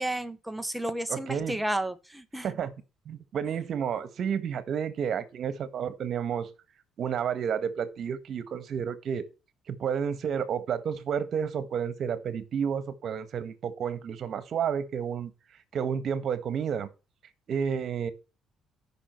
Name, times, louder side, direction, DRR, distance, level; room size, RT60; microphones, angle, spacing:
voice 1, 0.0-2.5, right 1 dB, 5° right, 1.1 m, -32 dB
voice 2, 1.1-1.6 2.4-2.7 3.0-6.5 7.0-9.3 9.7-15.3 15.7-16.9 17.5-18.1, right 7 dB, 55° right, 1.5 m, -31 dB
14.0 x 5.9 x 4.5 m
cardioid pair, 105°, 0 cm